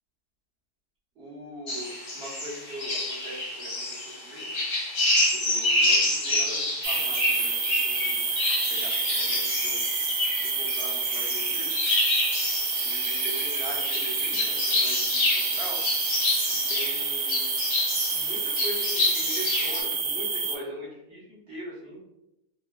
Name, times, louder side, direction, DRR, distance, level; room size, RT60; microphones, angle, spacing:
voice 1, 1.2-4.5 5.4-8.2 8.7-9.8 10.6-11.7 12.8-15.8 16.7-17.5 18.1-22.0, right 1 dB, 45° right, -6 dB, 1.2 m, -41 dB
sound 1, 1.7-19.8, left 1 dB, 50° left, 0.8 m, -28 dB
sound 2, 6.8-20.6, right 4 dB, 65° right, 1.0 m, -28 dB
3.9 x 2.4 x 2.2 m, 0.87 s
omnidirectional pair, 1.7 m